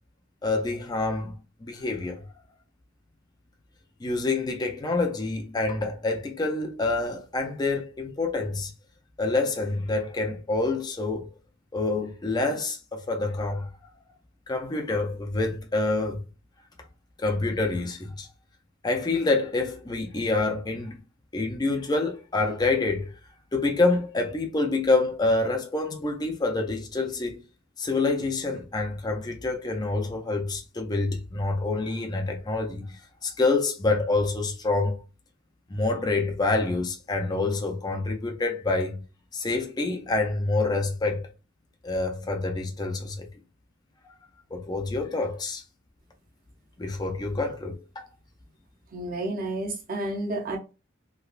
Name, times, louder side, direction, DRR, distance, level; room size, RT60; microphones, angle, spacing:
voice 1, 0.4-2.3 4.0-8.7 9.2-11.3 11.7-13.7 14.5-16.2 17.2-18.3 18.8-21.0 21.3-23.1 23.5-27.4 27.8-35.0 35.7-39.0 39.3-41.3 41.8-43.3 44.5-45.6 46.8-48.1, left 3 dB, 20° left, 0.4 m, -27 dB
voice 2, 48.9-50.6, right 1 dB, 45° right, 0.7 m, -30 dB
3.2 x 2.9 x 2.4 m
head